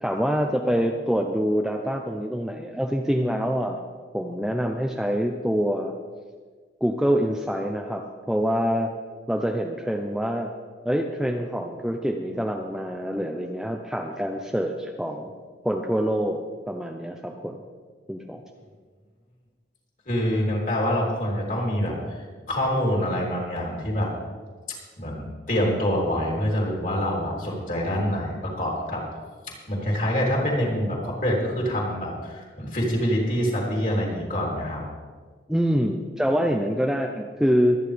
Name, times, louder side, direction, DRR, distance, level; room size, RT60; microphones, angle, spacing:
voice 1, 0.0-3.8 4.1-5.9 6.8-8.9 9.3-10.5 10.8-15.3 15.6-16.4 16.7-17.6 18.1-18.4 35.5-37.8, equal, 5° right, 2 dB, 0.6 m, -25 dB
voice 2, 20.0-24.1 25.0-29.0 29.7-34.8, equal, 45° left, -3 dB, 3.4 m, -26 dB
23.0 x 9.7 x 3.4 m, 1.5 s
head